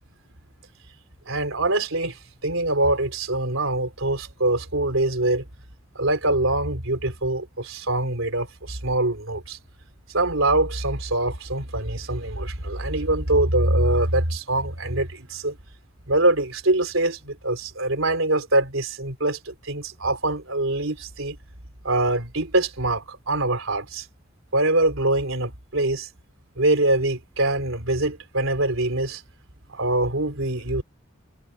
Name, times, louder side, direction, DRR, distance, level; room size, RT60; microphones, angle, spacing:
voice 1, 1.3-5.5 6.0-9.6 10.1-15.6 16.1-21.4 21.8-24.1 24.5-26.1 26.6-29.2 29.7-30.8, right 2 dB, 85° right, 3.9 m, -24 dB
head